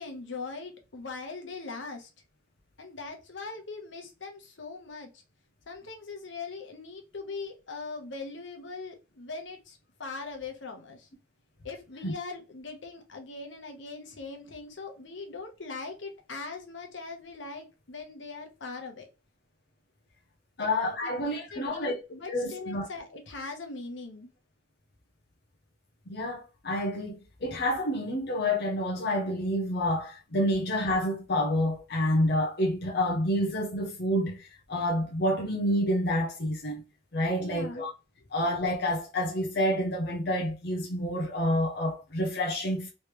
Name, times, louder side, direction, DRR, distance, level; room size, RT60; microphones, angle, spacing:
voice 1, 0.0-2.1 2.8-5.2 5.7-11.1 11.6-19.1 20.6-20.7 21.0-24.3 37.3-37.8, left 3 dB, 85° left, 1.1 m, -41 dB
voice 2, 20.6-22.0 22.3-22.9 26.1-36.8 37.1-37.9 38.3-42.9, left 1 dB, 60° left, 0.7 m, -28 dB
3.2 x 3.2 x 3.1 m
head